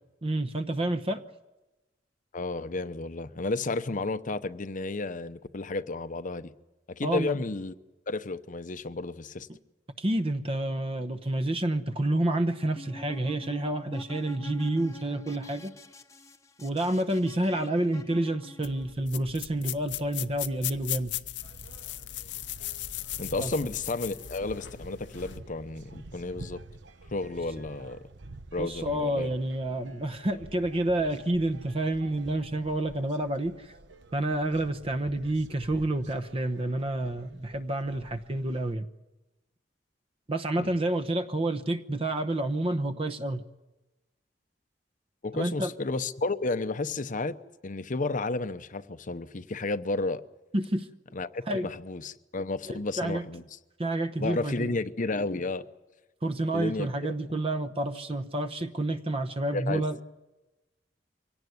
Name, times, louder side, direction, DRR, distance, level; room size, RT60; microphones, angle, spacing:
voice 1, 0.2-1.2 7.0-7.4 10.0-15.7 16.6-21.1 23.4-23.5 28.6-33.7 34.1-38.9 40.3-43.4 45.3-45.7 50.5-50.9 51.5-51.7 52.7-53.2 53.8-54.7 56.2-60.0, right 1 dB, 35° right, 10 dB, 1.0 m, -29 dB
voice 2, 2.3-6.5 6.9-7.7 8.1-9.5 23.2-26.6 27.1-28.0 28.5-29.3 40.6-40.7 45.2-47.4 47.6-50.2 51.1-53.4 54.2-55.7 56.5-56.9 59.5-59.8, left 3 dB, 45° left, 11 dB, 0.8 m, -32 dB
sound 1, 12.6-18.9, left 1 dB, 20° left, 1.1 m, -47 dB
sound 2, 18.6-25.4, left 13 dB, 75° left, 0.8 m, -38 dB
sound 3, 21.4-38.7, right 2 dB, 80° right, 1.0 m, -49 dB
24.0 x 17.5 x 9.5 m, 1.1 s
head